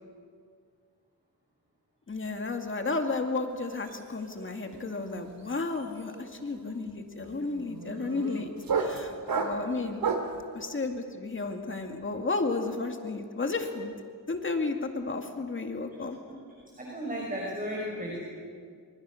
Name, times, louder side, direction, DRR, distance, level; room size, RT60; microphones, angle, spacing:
voice 1, 2.1-10.0 10.5-13.9 14.3-16.2, left 3 dB, 35° left, 5 dB, 2.2 m, -33 dB
sound 1, 3.6-3.9 4.2-10.4, right 5 dB, 70° right, 3.2 m, -34 dB
voice 2, 16.8-18.2, equal, 20° right, -2 dB, 6.4 m, -34 dB
29.5 x 26.0 x 6.5 m, 2.2 s
wide cardioid pair, 110°, 36 cm